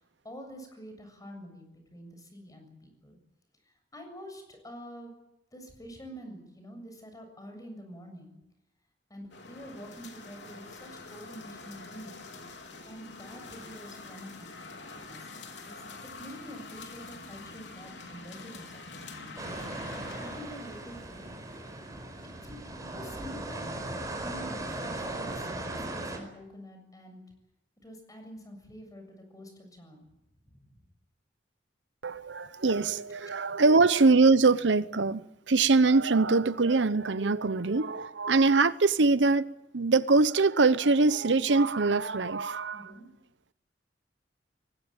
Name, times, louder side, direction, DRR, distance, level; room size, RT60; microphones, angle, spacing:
voice 1, 0.2-3.2 3.9-5.1 5.5-8.4 9.1-12.3 12.8-15.8 16.2-21.3 22.4-22.6 22.9-23.6 24.2-27.2 27.8-30.0 30.5-30.8 42.7-43.1, equal, 20° left, 7.3 m, -47 dB
sound 1, 9.3-24.7, left 3 dB, 70° left, 3.9 m, -47 dB
sound 2, 19.4-26.2, right 2 dB, 20° right, 5.0 m, -38 dB
voice 2, 32.0-35.2 35.5-39.4 39.7-42.9, right 3 dB, 80° right, 0.8 m, -23 dB
22.0 x 20.0 x 9.0 m
head